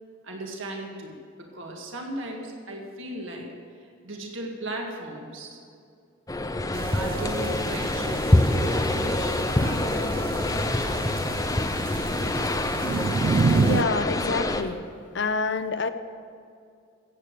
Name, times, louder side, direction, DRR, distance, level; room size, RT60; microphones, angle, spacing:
voice 1, 0.2-1.1 1.4-3.5 3.8-5.6 6.9-11.0, right 1 dB, 70° right, 1 dB, 2.0 m, -37 dB
sound 1, 6.3-14.6, left 1 dB, 15° left, 0.6 m, -26 dB
sound 2, 6.7-13.8, right 4 dB, 45° right, 0.3 m, -29 dB
voice 2, 13.5-14.8 15.1-15.9, left 4 dB, 55° left, 11 dB, 0.7 m, -27 dB
16.0 x 8.3 x 6.8 m, 2.4 s
head